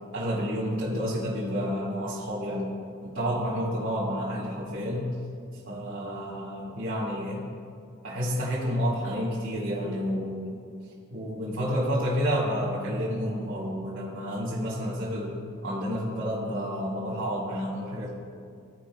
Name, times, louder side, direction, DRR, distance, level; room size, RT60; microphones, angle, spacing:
voice 1, 0.1-2.7 3.0-5.2 5.5-7.5 8.0-10.5 11.1-18.1, equal, 60° right, -8 dB, 1.7 m, -30 dB
14.0 x 5.1 x 2.4 m, 2.3 s
head